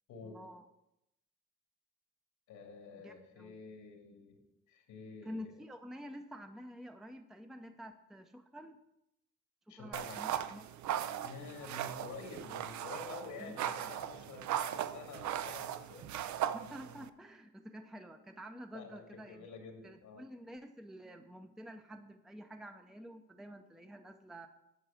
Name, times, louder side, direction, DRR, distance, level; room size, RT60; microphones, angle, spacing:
voice 1, 0.2-0.6 3.0-3.6 5.2-8.8 9.7-11.3 11.6-12.0 13.4-13.9 16.5-19.5 19.8-24.5, equal, ahead, 6 dB, 0.6 m, -49 dB
voice 2, 2.5-4.4 4.7-5.6 9.7-10.2 11.2-16.1 18.7-20.2, left 4 dB, 85° left, 3 dB, 2.2 m, -49 dB
sound 1, 9.9-17.1, right 10 dB, 70° right, 0.6 m, -38 dB
9.8 x 4.6 x 7.1 m, 0.85 s
cardioid pair, 90°, 30 cm